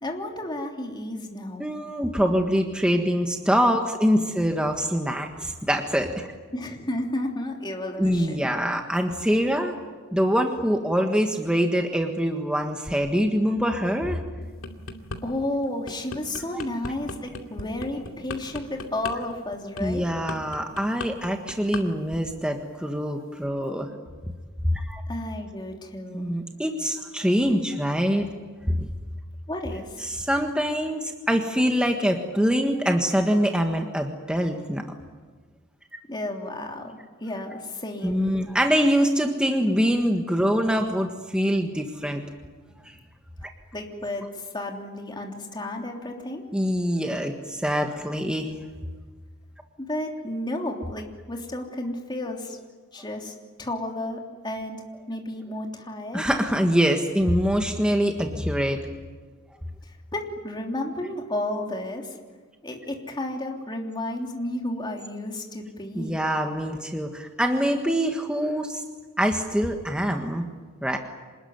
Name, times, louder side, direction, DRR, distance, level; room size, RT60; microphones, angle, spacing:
voice 1, 0.0-1.7 6.5-8.5 15.2-20.0 25.1-26.3 29.5-30.1 36.1-38.2 43.7-46.4 49.8-52.6 52.9-53.3 53.6-54.8 55.1-56.3 59.8-62.2 62.6-66.2, left 1 dB, 20° left, 1 dB, 3.2 m, -32 dB
voice 2, 1.6-6.2 8.0-9.7 10.1-14.2 19.8-23.9 24.6-25.0 26.1-28.3 28.7-28.9 30.0-34.8 38.0-42.2 42.8-42.9 46.5-48.5 56.1-58.8 66.0-68.8 69.2-70.4 70.8-71.0, equal, 5° right, 3 dB, 1.6 m, -24 dB
sound 1, 14.4-15.2 15.6-21.8 22.1-22.4, left 3 dB, 70° left, 2.6 m, -36 dB
26.5 x 20.5 x 9.5 m, 1.4 s
head